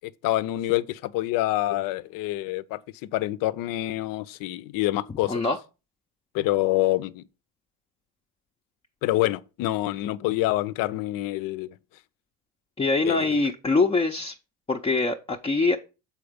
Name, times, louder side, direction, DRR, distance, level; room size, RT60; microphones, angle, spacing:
voice 1, 0.0-2.8 3.1-5.4 6.3-7.2 9.0-11.7 13.0-13.3, left 16 dB, 60° left, 0.6 m, -26 dB
voice 2, 5.3-5.6 12.8-14.3 14.7-15.8, left 3 dB, 15° left, 0.6 m, -23 dB
7.0 x 4.6 x 5.0 m
supercardioid pair, 100°, 38 cm